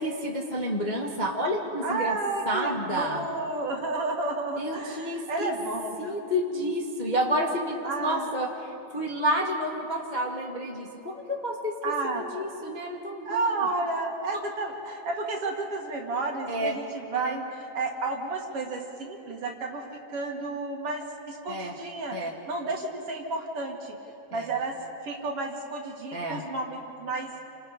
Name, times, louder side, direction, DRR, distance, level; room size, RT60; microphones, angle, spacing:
voice 1, 0.0-2.2 2.4-3.2 4.6-5.5 6.0-8.5 8.9-11.7 12.1-13.7 16.5-16.8 17.1-17.4 21.5-21.7 22.1-22.3 24.3-24.5 26.1-26.4, equal, 20° left, -2 dB, 1.4 m, -30 dB
voice 2, 1.8-6.2 7.8-8.3 11.8-12.3 13.3-19.8 20.1-23.9 24.3-24.7 25.0-27.3, right 3 dB, 50° right, 1 dB, 2.8 m, -31 dB
29.5 x 26.0 x 5.1 m, 2.8 s
omnidirectional pair, 3.4 m